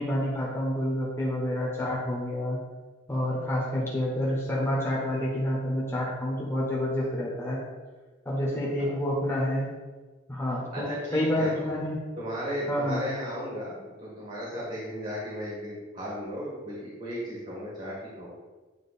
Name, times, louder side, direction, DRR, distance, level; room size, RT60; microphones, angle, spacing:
voice 1, 0.0-2.6 3.1-7.6 8.2-9.7 10.3-12.0 12.7-13.0, left 1 dB, 15° left, -5 dB, 1.2 m, -28 dB
voice 2, 10.7-11.5 12.2-18.3, equal, 40° right, -7 dB, 1.7 m, -35 dB
8.8 x 3.0 x 4.2 m, 1.3 s
head